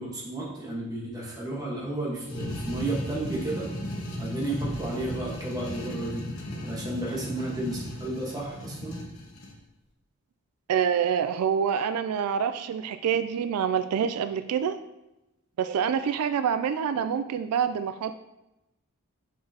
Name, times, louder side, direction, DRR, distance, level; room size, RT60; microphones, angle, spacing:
voice 1, 0.0-3.7 4.2-6.3 6.6-9.0, right 2 dB, 15° right, -3 dB, 1.4 m, -32 dB
sound 1, 2.2-9.6, equal, 70° left, 1.1 m, -36 dB
voice 2, 10.7-14.8 15.6-18.1, right 7 dB, 80° right, 10 dB, 0.3 m, -26 dB
6.5 x 5.8 x 2.9 m, 0.94 s
head